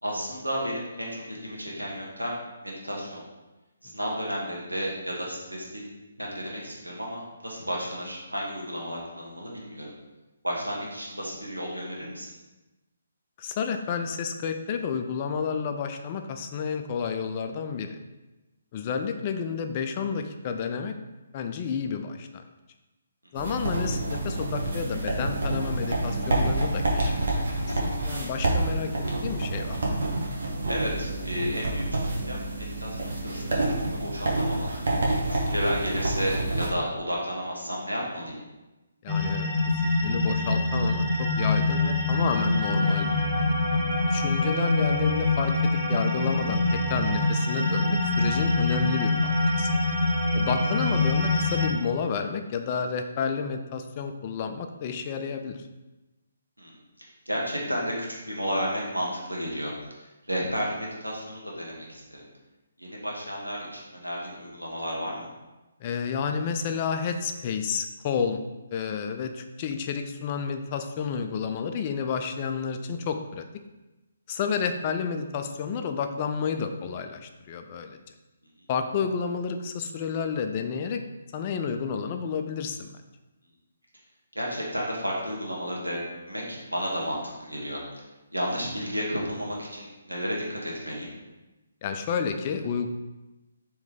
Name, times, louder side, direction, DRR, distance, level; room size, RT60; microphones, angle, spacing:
voice 1, 0.0-3.2 3.8-5.9 6.2-9.9 10.4-12.3 28.0-28.1 30.7-34.7 35.2-38.4 44.0-44.2 50.1-50.2 56.6-59.7 60.3-62.3 62.8-65.3 84.3-87.8 88.3-91.1, equal, 85° right, -3 dB, 1.1 m, -32 dB
voice 2, 13.4-18.0 18.7-20.9 21.3-22.4 23.3-28.9 29.2-30.0 39.0-43.2 44.0-49.7 50.3-55.6 65.8-68.4 68.7-73.5 74.3-78.0 78.7-81.0 81.3-83.0 91.8-92.9, left 6 dB, 30° left, 6 dB, 0.3 m, -30 dB
sound 1, 23.3-36.7, right 2 dB, 55° right, 0.9 m, -28 dB
sound 2, 39.1-51.7, left 2 dB, 15° right, 1.2 m, -25 dB
3.1 x 3.0 x 3.6 m, 1.1 s
figure-of-eight pair, 140°, 0 cm